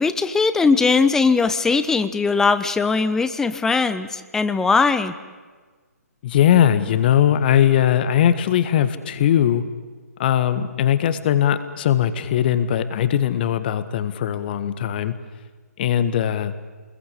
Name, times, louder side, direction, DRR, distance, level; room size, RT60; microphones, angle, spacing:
voice 1, 0.0-5.1, left 4 dB, 5° left, 12 dB, 0.8 m, -19 dB
voice 2, 6.2-9.6 10.2-15.1 15.8-16.5, left 10 dB, 35° left, 12 dB, 1.7 m, -19 dB
28.0 x 21.0 x 8.4 m, 1.4 s
figure-of-eight pair, 135°, 9 cm